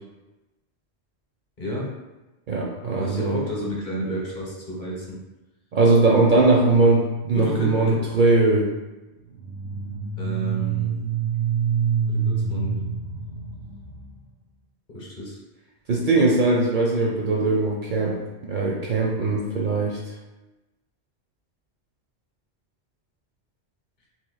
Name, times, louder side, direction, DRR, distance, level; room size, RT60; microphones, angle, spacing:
voice 1, 1.6-1.9 3.0-5.2 7.3-8.0 10.2-11.0 12.0-12.8 14.9-15.4, right 1 dB, 45° left, -4 dB, 1.0 m, -31 dB
voice 2, 2.5-3.4 5.7-8.7 15.9-18.2 18.5-20.0, right 3 dB, 55° right, -2 dB, 0.6 m, -20 dB
sound 1, 9.3-14.2, right 6 dB, 85° right, 1.4 m, -26 dB
3.0 x 2.6 x 3.9 m, 1.1 s
omnidirectional pair, 1.1 m